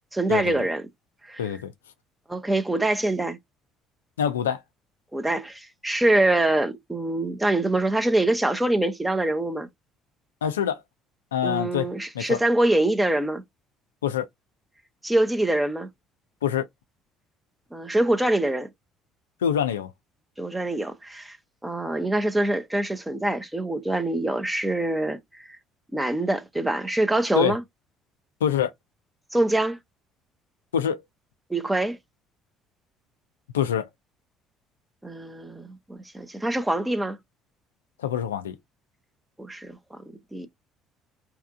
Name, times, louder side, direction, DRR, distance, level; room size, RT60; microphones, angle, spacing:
voice 1, 0.1-0.8 1.3-1.5 2.3-3.4 5.1-9.7 11.4-13.4 15.0-15.9 17.7-18.7 20.4-21.4 21.6-25.5 25.9-27.6 29.3-29.8 31.5-32.0 35.0-37.2 39.4-40.0 40.3-40.5, right 1 dB, 10° right, 0.7 m, -24 dB
voice 2, 1.4-1.7 4.2-4.6 10.4-10.8 11.3-11.9 12.2-12.4 14.0-14.2 16.4-16.6 19.4-19.9 27.4-27.6 28.4-28.7 30.7-31.0 33.5-33.9 38.0-38.6, left 9 dB, 75° left, 0.3 m, -25 dB
3.4 x 2.8 x 2.4 m
figure-of-eight pair, 50°, 0 cm